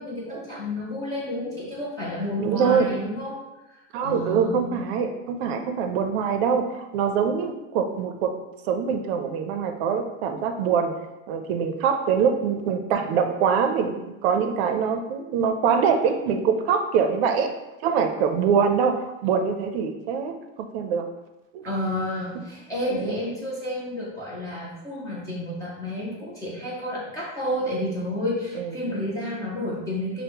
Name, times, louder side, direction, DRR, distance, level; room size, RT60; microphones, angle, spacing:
voice 1, 0.0-3.4 3.7-4.8 21.6-30.2, left 1 dB, 10° left, -7 dB, 0.3 m, -30 dB
voice 2, 2.4-2.9 3.9-8.3 8.7-10.9 11.3-17.5 17.8-20.3 20.7-21.0 21.5-21.6 22.9-23.2 28.5-28.7, right 6 dB, 65° right, 6 dB, 0.5 m, -24 dB
5.2 x 2.0 x 2.8 m, 1.0 s
supercardioid pair, 175°, 34 cm